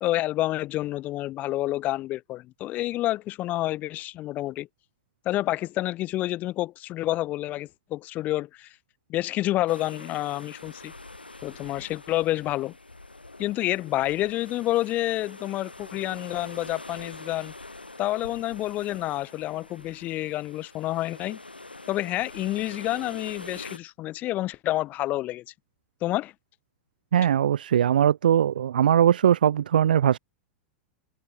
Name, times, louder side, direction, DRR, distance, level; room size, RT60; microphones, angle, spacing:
voice 1, 0.0-4.7 5.3-8.7 9.1-10.9 11.4-12.7 13.4-17.5 18.0-21.4 21.9-25.4 26.0-26.3, left 16 dB, 30° left, 0.5 m, -28 dB
sound 1, 9.7-23.8, left 2 dB, 85° left, 3.0 m, -44 dB
voice 2, 27.1-30.2, right 9 dB, 65° right, 0.4 m, -20 dB
figure-of-eight pair, 95°, 5 cm